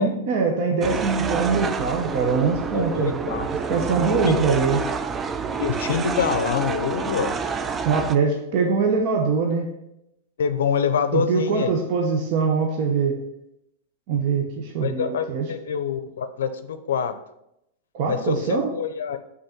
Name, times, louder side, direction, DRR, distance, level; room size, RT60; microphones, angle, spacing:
voice 1, 0.0-3.4 3.7-4.8 7.8-9.7 11.1-13.2 14.1-15.5 17.9-18.7, right 5 dB, 55° right, 2 dB, 0.9 m, -23 dB
sound 1, 0.8-8.2, right 5 dB, 20° right, 0.4 m, -28 dB
voice 2, 2.7-3.5 4.2-4.4 5.6-7.3 10.4-11.7 14.8-17.1 18.1-19.2, left 7 dB, 80° left, 11 dB, 0.5 m, -25 dB
5.3 x 4.1 x 5.9 m, 0.82 s
hypercardioid pair, 110°, 0 cm